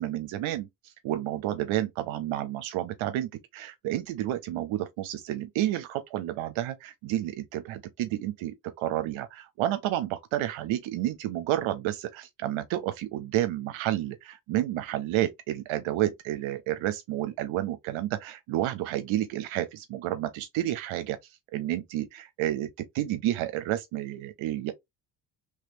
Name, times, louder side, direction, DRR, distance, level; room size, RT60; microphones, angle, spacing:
voice 1, 0.0-24.7, right 13 dB, 70° right, 0.6 m, -30 dB
3.3 x 3.3 x 2.6 m
supercardioid pair, 60°, 49 cm